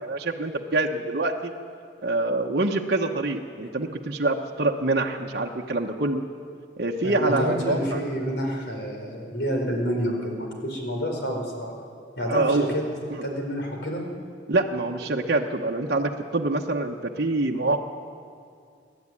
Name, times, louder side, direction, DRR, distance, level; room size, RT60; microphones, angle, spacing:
voice 1, 0.0-1.5 2.0-6.2 6.8-8.0 12.3-12.7 14.5-17.8, right 2 dB, 60° right, -1 dB, 1.1 m, -25 dB
voice 2, 7.0-11.7 12.2-12.8 13.2-14.0, equal, 65° left, 1 dB, 4.6 m, -28 dB
25.0 x 12.0 x 9.8 m, 2.4 s
head